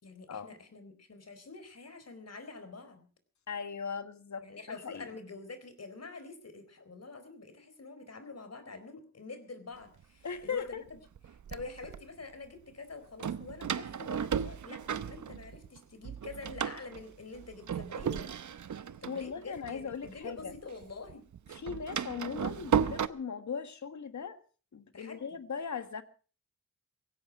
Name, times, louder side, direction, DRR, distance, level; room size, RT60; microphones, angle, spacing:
voice 1, 0.0-3.0 4.4-11.0 11.3-18.3 19.0-21.3 24.9-25.2, left 3 dB, 60° left, 4.2 m, -46 dB
voice 2, 3.5-5.1 10.2-10.8 19.1-20.5 21.5-24.4 24.7-26.0, left 6 dB, 75° left, 1.6 m, -39 dB
Door, 10.0-10.1 10.9-12.0 13.2-15.8 16.0-20.6 20.8-23.1, right 7 dB, 85° right, 0.8 m, -35 dB
18.0 x 16.5 x 4.8 m
cardioid pair, 65°, 29 cm